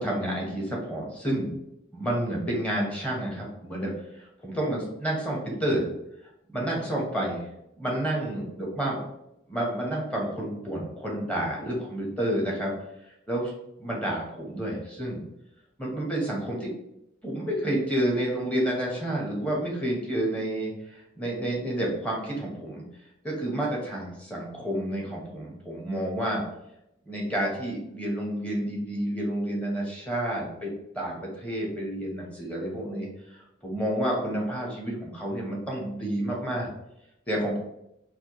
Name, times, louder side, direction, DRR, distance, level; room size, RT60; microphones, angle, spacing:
voice 1, 0.0-1.5 1.9-5.9 6.5-7.5 7.8-9.0 9.5-12.7 13.3-13.5 13.8-15.2 15.8-16.7 17.2-22.8 23.2-26.4 27.1-36.7 37.3-37.6, right 1 dB, 5° left, -3 dB, 0.9 m, -30 dB
4.2 x 2.5 x 3.0 m, 0.83 s
head